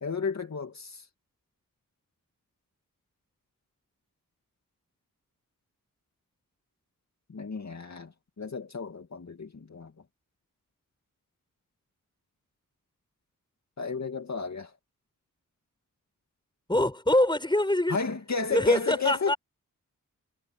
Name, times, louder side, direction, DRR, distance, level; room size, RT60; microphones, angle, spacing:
voice 1, 0.0-1.1 7.3-9.9 13.8-14.7 17.9-19.3, left 4 dB, 50° left, 2.3 m, -32 dB
voice 2, 16.7-18.0 18.5-19.4, left 1 dB, 15° left, 5.6 m, -24 dB
cardioid pair, 60°, 34 cm